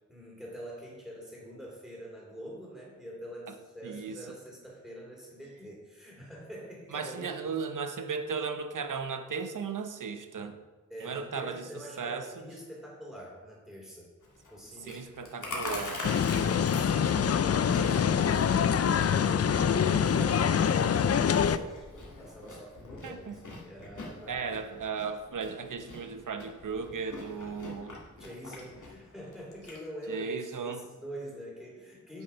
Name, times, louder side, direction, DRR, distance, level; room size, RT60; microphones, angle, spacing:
voice 1, 0.1-7.5 10.9-14.1 14.5-15.0 15.4-15.6 16.3-18.5 18.8-24.4 28.1-32.2, equal, ahead, -5 dB, 3.0 m, -45 dB
voice 2, 3.8-4.2 6.9-10.6 11.0-11.7 12.0-12.3 14.8-16.1 17.0-17.2 19.6-20.1 23.0-23.3 24.3-28.0 30.1-30.8, right 5 dB, 80° right, 8 dB, 0.9 m, -36 dB
Chewing mastication, 14.2-29.8, left 2 dB, 75° left, 2.4 m, -45 dB
sound 1, 16.0-21.6, left 7 dB, 50° left, 0.4 m, -25 dB
10.5 x 6.5 x 5.7 m, 1.3 s
wide cardioid pair, 125°, 31 cm